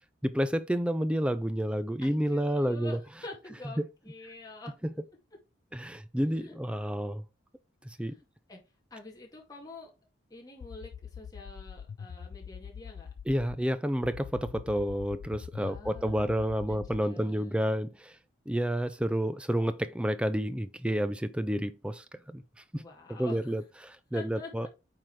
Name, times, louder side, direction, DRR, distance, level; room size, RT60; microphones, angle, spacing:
voice 1, 0.2-3.0 3.8-3.9 4.8-4.9 5.7-7.2 7.8-8.1 13.3-18.2 18.5-22.4 22.7-22.8 23.2-24.7, equal, 5° right, 0.4 m, -30 dB
voice 2, 2.0-4.8 6.3-6.6 8.0-8.2 8.5-8.6 8.9-9.9 10.3-13.1 15.6-17.7 22.7-23.6 24.1-24.7, left 2 dB, 20° left, 2.2 m, -47 dB
sound 1, 10.6-13.6 14.0-17.0, left 7 dB, 75° left, 0.3 m, -44 dB
8.9 x 3.8 x 4.6 m
head